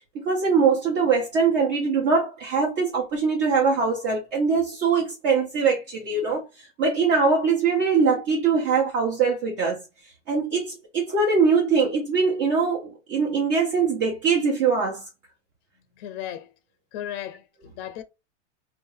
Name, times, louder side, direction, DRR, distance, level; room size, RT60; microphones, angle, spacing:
voice 1, 0.1-6.4 6.8-9.8 10.3-15.0, right 5 dB, 40° right, 1.2 m, -22 dB
voice 2, 16.0-16.5 16.9-18.0, left 11 dB, 50° left, 0.6 m, -35 dB
3.5 x 2.5 x 3.2 m
supercardioid pair, 145°, 36 cm